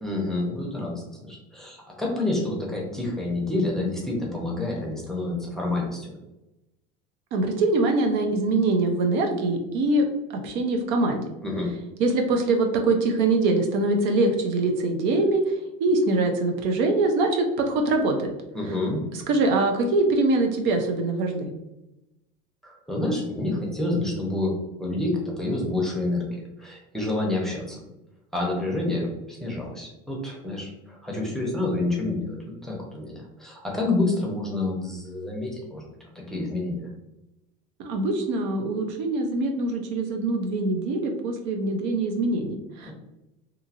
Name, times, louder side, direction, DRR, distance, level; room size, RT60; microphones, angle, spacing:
voice 1, 0.0-6.2 11.4-11.7 18.5-19.0 22.6-27.9 28.3-32.4 32.6-35.8 36.1-36.9 42.8-42.9, left 2 dB, ahead, -3 dB, 0.7 m, -28 dB
voice 2, 7.3-10.0 10.3-11.2 12.0-18.3 19.1-21.5 37.8-42.9, right 2 dB, 60° right, 3 dB, 0.5 m, -23 dB
2.8 x 2.7 x 2.5 m, 0.95 s
supercardioid pair, 135°, 21 cm